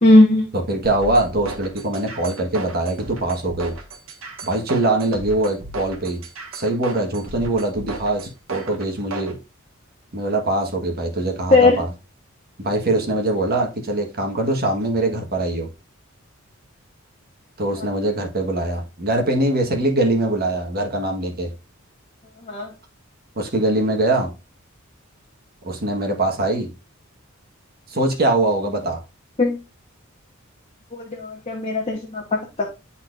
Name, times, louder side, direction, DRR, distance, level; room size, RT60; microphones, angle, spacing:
voice 1, 0.0-0.5 11.5-11.8 22.5-22.7 29.4-29.6 30.9-32.7, left 2 dB, 30° left, 1.2 m, -17 dB
voice 2, 0.5-3.7 4.4-6.2 6.5-9.4 10.1-11.9 12.6-15.7 17.6-21.5 23.3-24.3 25.6-26.7 27.9-29.0, right 2 dB, 50° right, 1.4 m, -22 dB
sound 1, 0.8-9.3, right 2 dB, 70° right, 1.5 m, -34 dB
10.0 x 4.2 x 2.5 m
head